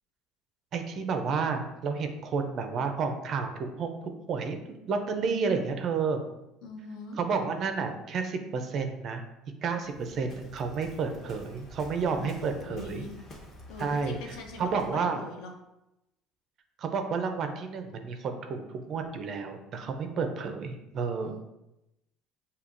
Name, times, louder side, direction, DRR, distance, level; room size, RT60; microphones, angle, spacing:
voice 1, 0.7-4.0 4.3-4.6 4.9-6.2 7.2-9.2 9.6-13.1 13.8-15.3 16.8-21.4, right 5 dB, 35° right, 6 dB, 0.4 m, -31 dB
voice 2, 6.6-7.2 12.1-13.3 13.7-15.5 21.1-21.4, left 2 dB, 65° left, 3 dB, 0.7 m, -43 dB
Waves surf, 9.8-15.0, left 1 dB, 25° left, 0.8 m, -50 dB
6.7 x 2.7 x 2.5 m, 0.91 s
cardioid pair, 175°, 0 cm